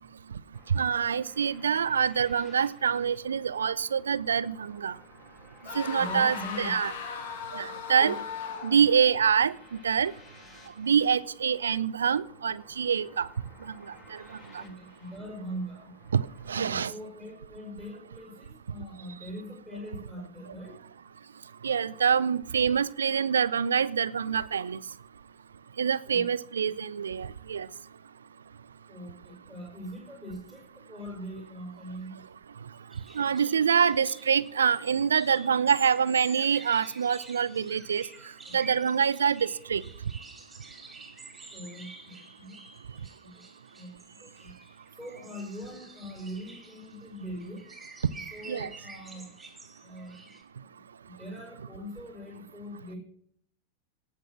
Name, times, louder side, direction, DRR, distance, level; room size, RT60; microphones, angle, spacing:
sound 1, 0.5-16.9, left 2 dB, 25° left, 2.6 m, -56 dB
voice 1, 0.7-5.0 5.7-6.9 7.5-8.2 8.6-9.5 9.8-10.1 10.8-13.3 13.7-13.8 14.1-14.2 14.5-14.6 16.1-16.9 21.6-24.8 25.8-27.7 33.1-38.0 38.5-39.8 48.5-48.7, right 7 dB, 70° right, 18 dB, 0.4 m, -26 dB
sound 2, 5.6-9.0, left 6 dB, 55° left, 1.9 m, -37 dB
voice 2, 5.9-6.8 8.0-8.2 14.6-16.0 16.5-20.8 26.1-26.3 28.9-32.1 38.5-38.6 41.5-42.6 42.9-43.9 44.2-44.5 44.9-47.7 48.1-49.3 49.8-50.2 50.6-50.7 51.0-53.0, equal, 10° left, -3 dB, 5.0 m, -42 dB
sound 3, 32.9-50.4, right 3 dB, 10° right, 3.1 m, -49 dB
18.0 x 6.2 x 6.2 m, 0.67 s
figure-of-eight pair, 90°, 0 cm